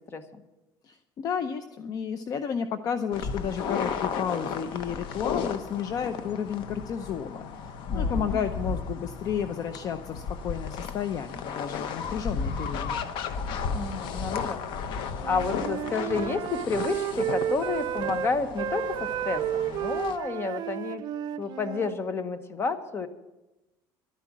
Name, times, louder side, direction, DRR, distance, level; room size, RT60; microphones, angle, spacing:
voice 1, 0.8-13.0, left 7 dB, 45° left, 10 dB, 0.6 m, -32 dB
sound 1, 3.1-20.2, left 5 dB, 65° left, 1.0 m, -34 dB
voice 2, 7.9-8.4 13.7-14.6 15.3-21.0 21.4-23.1, left 4 dB, 30° left, 10 dB, 1.1 m, -30 dB
Wind instrument woodwind instrument, 15.1-22.0, right 10 dB, 55° right, 0.5 m, -32 dB
12.0 x 9.9 x 7.4 m, 1.0 s
cardioid pair, 140°, 9 cm